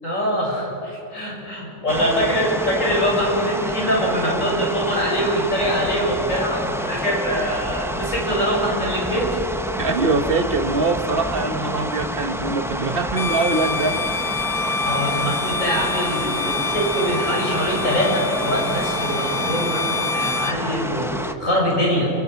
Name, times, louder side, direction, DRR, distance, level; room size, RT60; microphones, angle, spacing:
voice 1, 0.0-9.4 14.5-19.8 20.1-22.1, equal, 70° left, -3 dB, 7.2 m, -23 dB
sound 1, 1.9-21.3, equal, ahead, 0.7 m, -28 dB
voice 2, 9.8-14.0, right 3 dB, 45° right, 7 dB, 1.5 m, -23 dB
Bowed string instrument, 13.1-20.6, left 3 dB, 40° left, 0.6 m, -27 dB
30.0 x 23.0 x 5.9 m, 3.0 s
omnidirectional pair, 1.4 m